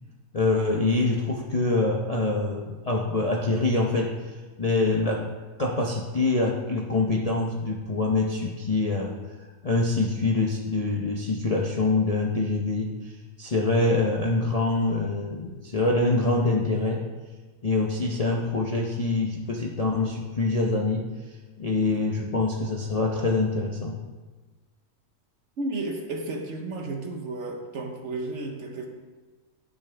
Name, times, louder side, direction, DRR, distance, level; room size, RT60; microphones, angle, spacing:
voice 1, 0.3-4.1 4.6-5.3 5.6-9.1 9.6-13.1 13.4-17.0 17.6-21.0 21.6-24.0, left 2 dB, 40° left, -2 dB, 0.6 m, -25 dB
voice 2, 25.6-28.9, right 2 dB, 55° right, 2 dB, 1.1 m, -32 dB
10.5 x 6.4 x 3.4 m, 1.3 s
omnidirectional pair, 1.6 m